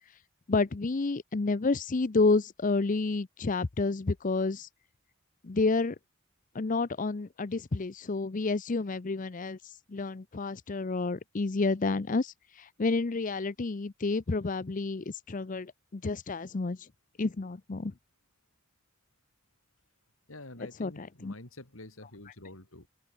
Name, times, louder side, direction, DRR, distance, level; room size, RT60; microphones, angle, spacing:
voice 1, 0.5-4.7 5.4-6.0 6.5-16.9 17.2-17.9 20.8-21.3, left 3 dB, 40° left, 0.6 m, -30 dB
voice 2, 20.3-22.9, left 2 dB, 80° left, 4.2 m, -47 dB
open air
head